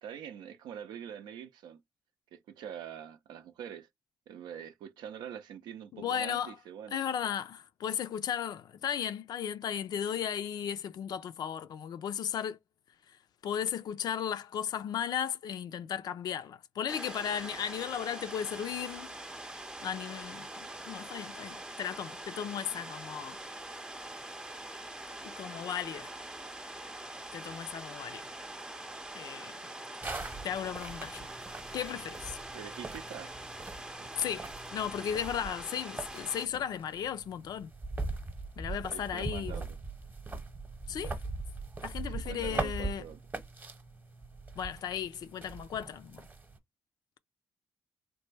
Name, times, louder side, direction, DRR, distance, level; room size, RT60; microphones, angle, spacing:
voice 1, 0.0-1.8 2.3-3.9 4.3-7.0 32.5-33.3 33.8-34.1 38.9-39.8 42.0-43.2, right 9 dB, 90° right, 0.5 m, -44 dB
voice 2, 5.9-6.6 6.9-12.6 13.4-19.1 19.8-20.5 20.9-23.4 25.2-26.1 27.3-28.3 29.1-29.6 30.1-31.3 31.7-32.4 34.2-37.7 38.6-39.6 40.9-41.2 41.8-43.1 44.6-46.3, left 9 dB, 70° left, 0.4 m, -35 dB
sound 1, 16.9-36.5, right 1 dB, 10° right, 0.4 m, -44 dB
sound 2, 30.0-46.6, right 3 dB, 25° right, 0.8 m, -41 dB
3.3 x 2.1 x 3.2 m
supercardioid pair, 65°, 7 cm